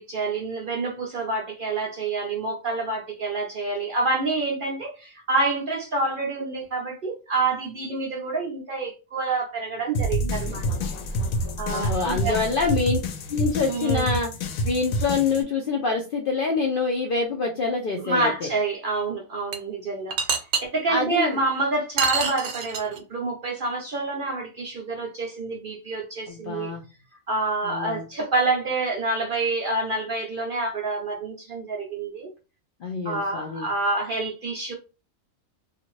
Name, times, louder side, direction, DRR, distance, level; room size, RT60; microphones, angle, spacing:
voice 1, 0.0-10.7 11.6-12.4 13.7-14.1 18.0-26.7 27.3-32.3 33.0-34.7, right 3 dB, 55° right, 0.6 m, -27 dB
sound 1, 9.9-15.4, equal, 85° left, 1.0 m, -28 dB
voice 2, 11.7-13.0 13.3-14.3 14.6-18.5 20.9-21.4 26.3-26.8 27.6-28.0 32.8-33.7, left 4 dB, 65° left, 0.5 m, -26 dB
sound 2, 19.5-19.6 20.1-20.6 22.0-23.0, right 6 dB, 75° right, 1.0 m, -25 dB
2.5 x 2.4 x 3.0 m
omnidirectional pair, 1.4 m